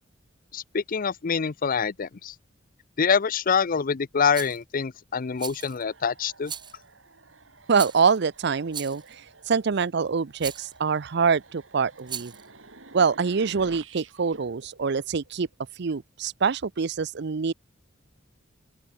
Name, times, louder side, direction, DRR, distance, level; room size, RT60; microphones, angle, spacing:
voice 1, 0.5-2.3 3.0-6.5, left 6 dB, 45° left, 0.6 m, -25 dB
Rattle, 4.3-4.6 5.4-5.8 6.4-6.8 7.7-8.2 8.7-9.1 10.4-10.7 12.0-12.5, right 8 dB, 25° right, 0.7 m, -37 dB
sound 1, 5.6-15.8, right 3 dB, 85° right, 3.9 m, -51 dB
voice 2, 7.7-9.0 9.5-12.3 12.9-15.5 15.8-17.5, right 5 dB, 60° right, 0.6 m, -25 dB
open air
head